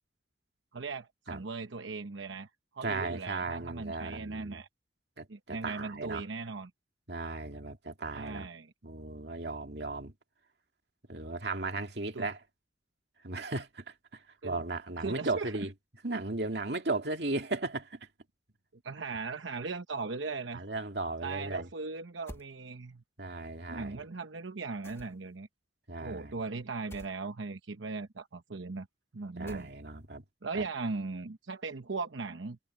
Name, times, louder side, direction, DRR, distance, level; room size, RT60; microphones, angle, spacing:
voice 1, 0.7-4.7 5.3-6.7 8.1-8.7 12.1-12.3 14.4-14.6 15.0-15.7 18.8-20.6 21.2-23.0 23.7-25.5 26.0-28.9 29.1-29.7 30.4-32.6, right 4 dB, 85° right, 1.0 m, -38 dB
voice 2, 2.8-4.6 5.2-6.2 7.1-8.5 8.8-10.1 11.1-12.4 13.2-15.7 16.0-18.1 20.5-21.7 23.2-24.0 25.9-26.4 29.4-30.2 30.5-30.7, right 2 dB, 60° right, 2.5 m, -36 dB
sound 1, 22.3-22.5 24.8-25.4 26.9-27.2 29.5-30.0, equal, 15° left, 1.6 m, -48 dB
head